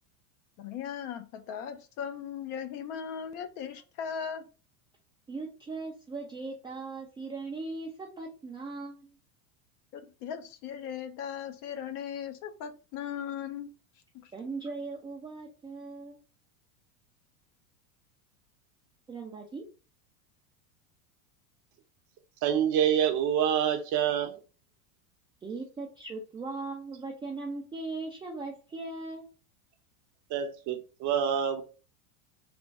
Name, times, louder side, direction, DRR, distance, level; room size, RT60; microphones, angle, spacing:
voice 1, 0.6-4.5 9.9-13.7 14.1-14.3, left 8 dB, 50° left, 0.7 m, -38 dB
voice 2, 5.3-9.2 14.3-16.2 19.1-19.6 25.4-29.3, right 3 dB, 10° right, 0.4 m, -39 dB
voice 3, 22.4-24.4 30.3-31.6, right 9 dB, 40° right, 0.7 m, -27 dB
3.4 x 2.2 x 3.9 m
supercardioid pair, 120°, 45 cm